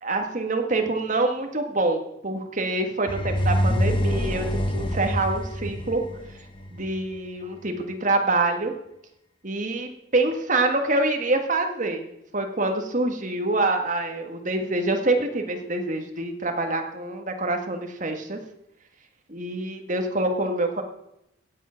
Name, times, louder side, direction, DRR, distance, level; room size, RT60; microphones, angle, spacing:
voice 1, 0.0-4.5 4.7-6.0 6.7-8.7 9.4-12.1 12.3-18.4 19.3-20.8, right 2 dB, 40° right, 4 dB, 1.7 m, -26 dB
sound 1, 3.1-7.0, equal, 25° left, 1.1 m, -25 dB
16.5 x 7.5 x 5.8 m, 0.82 s
head